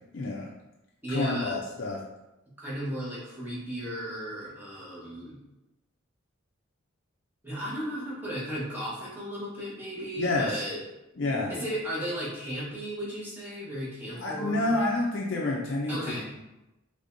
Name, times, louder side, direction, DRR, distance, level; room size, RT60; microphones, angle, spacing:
voice 1, 0.1-0.5 1.1-2.0 10.2-10.6 11.2-11.5 14.2-16.2, left 2 dB, 60° left, -3 dB, 0.6 m, -28 dB
voice 2, 1.0-1.6 2.6-5.4 7.4-10.8 11.5-14.8 15.9-16.3, equal, 10° right, -8 dB, 1.3 m, -35 dB
5.0 x 3.4 x 2.6 m, 0.96 s
head